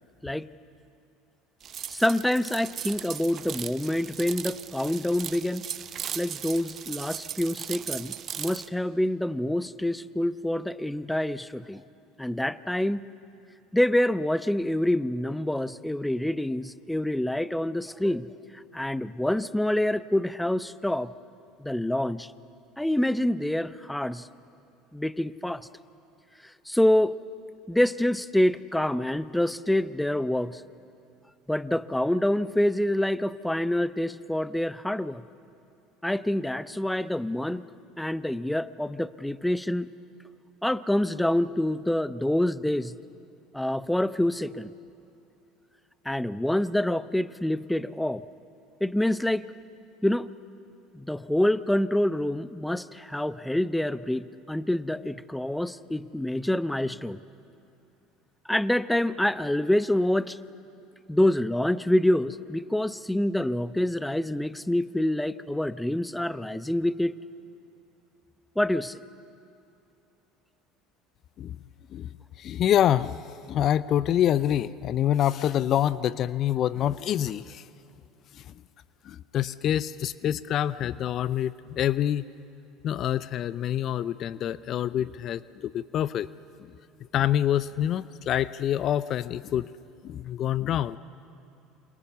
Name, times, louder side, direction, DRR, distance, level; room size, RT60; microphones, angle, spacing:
sound 1, 1.6-8.7, right 9 dB, 45° right, 0.9 m, -38 dB
voice 1, 1.9-5.7 6.1-11.8 12.2-13.0 13.7-21.1 21.6-22.3 22.8-24.3 24.9-25.7 26.7-27.1 27.7-30.6 31.5-35.2 36.0-37.7 38.0-39.9 40.6-43.0 43.5-44.7 46.0-48.2 48.8-49.5 50.0-50.3 50.9-57.2 58.5-60.4 61.1-67.1 68.6-69.0, left 1 dB, 5° left, 15 dB, 0.7 m, -26 dB
voice 2, 72.4-73.2 73.5-77.6 78.3-78.4 79.0-82.2 82.8-86.3 87.1-89.7 90.0-91.0, left 11 dB, 50° left, 17 dB, 0.6 m, -26 dB
29.0 x 25.0 x 6.9 m, 2.7 s
hypercardioid pair, 75°, 0 cm